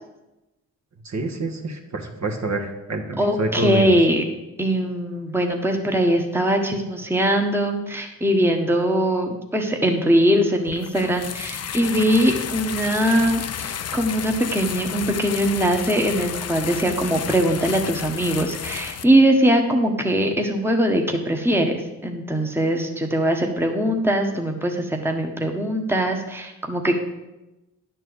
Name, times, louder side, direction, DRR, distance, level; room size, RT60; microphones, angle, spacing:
voice 1, 1.0-3.9, right 2 dB, 50° right, 3 dB, 1.5 m, -27 dB
voice 2, 3.2-4.2 4.6-27.0, right 1 dB, 5° right, 3 dB, 1.3 m, -21 dB
sound 1, 10.7-19.0, left 8 dB, 45° left, 0.5 m, -32 dB
10.0 x 4.6 x 7.8 m, 1.0 s
cardioid pair, 65°, 36 cm